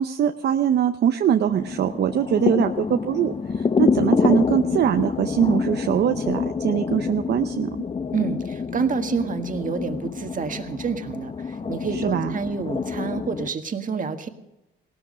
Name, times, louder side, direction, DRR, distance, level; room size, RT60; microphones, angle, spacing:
voice 1, 0.0-7.7 11.9-12.4, right 9 dB, 60° right, 7 dB, 0.7 m, -22 dB
sound 1, 1.5-13.5, left 5 dB, 30° left, 0.7 m, -27 dB
voice 2, 8.1-14.3, right 5 dB, 40° right, 6 dB, 1.6 m, -28 dB
17.5 x 13.0 x 5.2 m, 0.91 s
cardioid pair, 90°, 20 cm